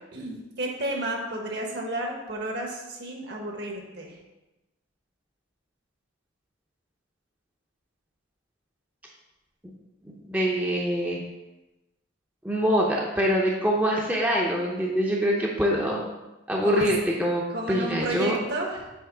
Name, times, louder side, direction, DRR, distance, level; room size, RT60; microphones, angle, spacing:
voice 1, 0.1-4.2 16.6-16.9 17.5-18.9, right 1 dB, 55° right, 0 dB, 1.2 m, -32 dB
voice 2, 10.0-11.2 12.4-16.0 16.5-18.4, equal, 10° right, -3 dB, 0.6 m, -24 dB
7.8 x 3.0 x 4.8 m, 1.0 s
head